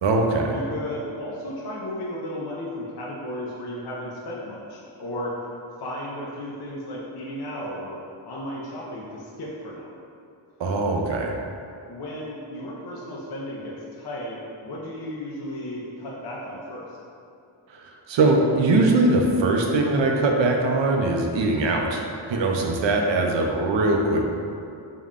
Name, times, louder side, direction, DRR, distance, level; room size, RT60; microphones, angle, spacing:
voice 1, 0.0-0.5 10.6-11.3 17.7-24.2, right 2 dB, 65° right, 1 dB, 0.5 m, -21 dB
voice 2, 0.5-5.4 5.8-8.0 8.2-9.9 11.9-17.0 22.9-23.2, left 1 dB, 50° left, -4 dB, 0.5 m, -34 dB
3.6 x 2.2 x 3.5 m, 2.5 s
wide cardioid pair, 110°, 49 cm